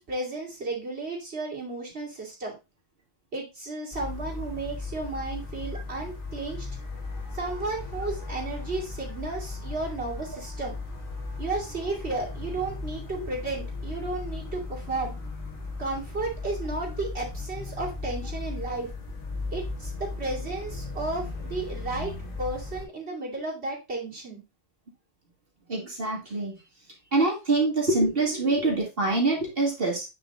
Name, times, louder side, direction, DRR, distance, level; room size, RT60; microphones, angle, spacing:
voice 1, 0.0-2.5 3.3-6.7 7.3-10.7 11.4-15.1 15.8-18.9 19.5-22.1 22.4-24.4, right 3 dB, 75° right, -3 dB, 2.7 m, -33 dB
sound 1, 3.9-22.8, left 3 dB, 50° left, 2.4 m, -36 dB
voice 2, 25.7-26.5 27.1-30.0, right 2 dB, 60° right, -2 dB, 2.4 m, -25 dB
8.5 x 4.0 x 3.6 m, 0.26 s
omnidirectional pair, 1.1 m